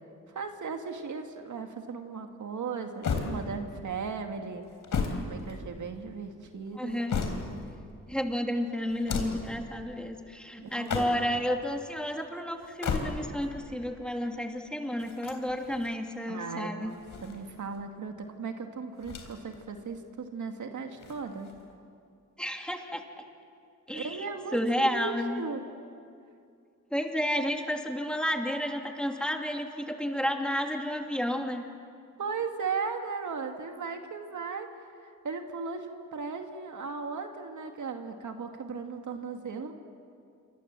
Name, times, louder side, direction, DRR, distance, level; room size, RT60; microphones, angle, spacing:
voice 1, 0.3-4.6 5.2-7.0 10.6-11.0 16.3-21.5 23.9-25.6 32.2-34.7 35.0-39.7, right 5 dB, 70° right, 4 dB, 2.3 m, -37 dB
sound 1, 3.0-3.8 4.6-6.0 6.7-7.7 8.9-9.5 10.7-11.4 12.6-13.5 15.0-16.0 16.9-17.8 19.0-19.6 19.9-20.0 21.0-21.8, left 5 dB, 80° left, 3.7 m, -34 dB
voice 2, 6.7-7.2 8.1-17.0 22.4-23.0 23.9-24.3 24.5-25.4 26.9-31.6, equal, 5° left, 3 dB, 2.8 m, -31 dB
27.5 x 25.0 x 7.6 m, 2.4 s
cardioid pair, 85°, 31 cm